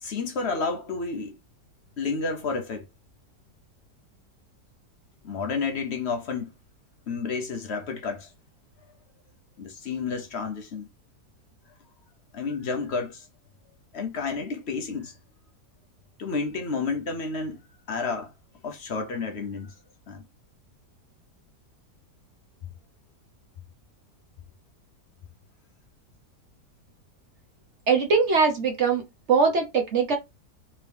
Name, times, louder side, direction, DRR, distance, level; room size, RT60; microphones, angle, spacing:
voice 1, 0.0-1.4 2.0-2.9 5.2-6.5 7.1-8.3 9.6-10.9 12.3-13.3 13.9-15.1 16.2-17.6 17.9-18.3 18.6-19.7 20.1-20.2, left 4 dB, 60° left, 0.7 m, -30 dB
voice 2, 27.9-30.2, right 5 dB, 50° right, 1.0 m, -22 dB
3.6 x 3.1 x 3.3 m
omnidirectional pair, 1.8 m